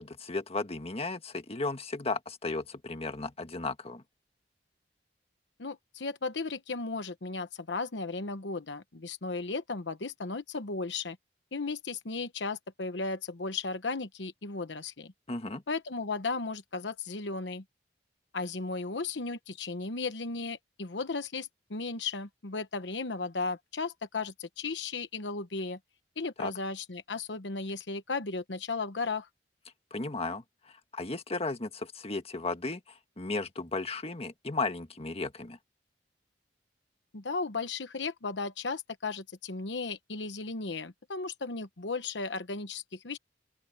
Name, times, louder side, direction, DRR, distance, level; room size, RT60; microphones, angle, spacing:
voice 1, 0.0-4.0 15.3-15.6 26.4-26.5 29.9-30.4 30.9-32.8 33.2-35.6, left 3 dB, 35° left, 1.7 m, -34 dB
voice 2, 5.6-11.2 11.5-15.1 15.7-17.6 18.3-25.8 26.2-29.3 37.1-43.2, left 3 dB, 75° left, 1.1 m, -35 dB
open air
head